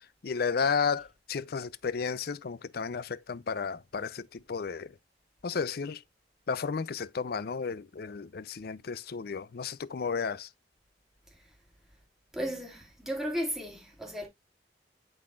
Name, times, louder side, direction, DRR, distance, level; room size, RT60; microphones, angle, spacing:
voice 1, 0.2-4.9 5.4-6.0 6.5-10.5, left 5 dB, 55° left, 0.5 m, -33 dB
voice 2, 12.3-14.3, equal, ahead, 2.0 m, -34 dB
11.5 x 4.0 x 2.3 m
head